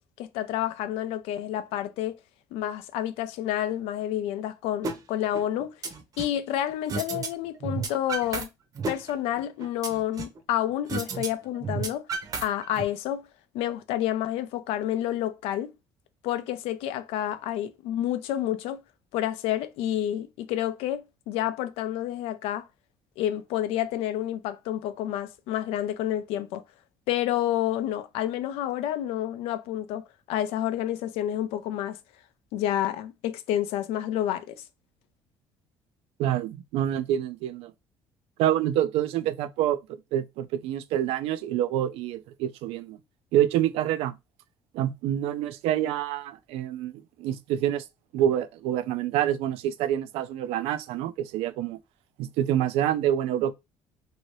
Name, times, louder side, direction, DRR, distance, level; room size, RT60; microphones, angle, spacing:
voice 1, 0.2-2.2 2.5-5.7 6.2-8.5 8.9-12.1 12.4-13.3 13.5-15.7 16.2-18.8 19.1-22.6 23.2-26.6 27.1-32.0 32.5-34.6, left 12 dB, 85° left, 0.4 m, -29 dB
sound 1, 4.8-5.0 5.3-6.4 6.9-7.3 7.6-8.4 8.8-10.4 10.9-11.3 11.6-12.8, right 4 dB, 40° right, 0.7 m, -32 dB
voice 2, 36.2-37.7 38.4-43.0 43.3-44.1 44.7-46.9 47.2-47.8 48.1-51.8 52.2-53.5, right 11 dB, 80° right, 0.4 m, -27 dB
2.7 x 2.7 x 3.1 m
cardioid pair, 125°, 10 cm